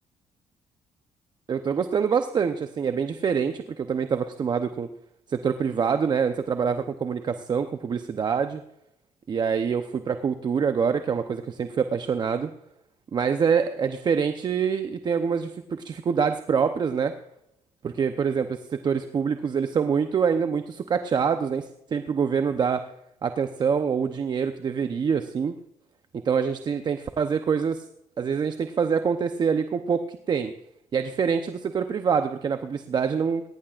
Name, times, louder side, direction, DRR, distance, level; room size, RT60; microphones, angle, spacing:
voice 1, 1.5-4.9 5.3-8.6 9.3-12.5 13.1-17.1 17.8-22.8 23.2-25.5 26.1-27.8 28.2-30.5 30.9-33.4, right 6 dB, 40° right, 8 dB, 0.8 m, -25 dB
18.0 x 17.0 x 2.5 m, 0.81 s
cardioid pair, 125°, 12 cm